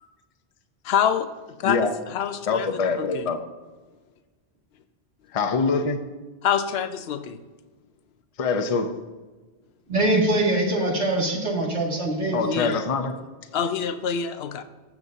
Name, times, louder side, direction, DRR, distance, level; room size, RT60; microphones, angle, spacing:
voice 1, 0.8-1.3 1.6-2.7 3.0-3.3 6.4-7.4 12.4-12.8 13.5-14.6, left 8 dB, 75° left, 0.9 m, -26 dB
voice 2, 2.5-3.4 5.3-6.0 8.4-8.9 12.3-13.1, left 4 dB, 40° left, 0.7 m, -24 dB
voice 3, 9.9-12.7, right 1 dB, 90° right, 2.4 m, -23 dB
16.0 x 7.2 x 2.7 m
omnidirectional pair, 1.1 m